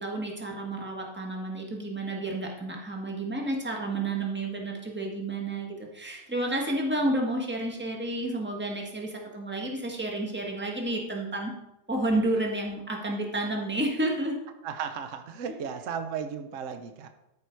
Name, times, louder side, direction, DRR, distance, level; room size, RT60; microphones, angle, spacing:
voice 1, 0.0-11.5 11.9-14.4, right 1 dB, 5° right, 0 dB, 1.4 m, -30 dB
voice 2, 14.6-17.1, right 7 dB, 70° right, 7 dB, 0.7 m, -35 dB
12.5 x 6.0 x 4.6 m, 0.88 s
omnidirectional pair, 2.2 m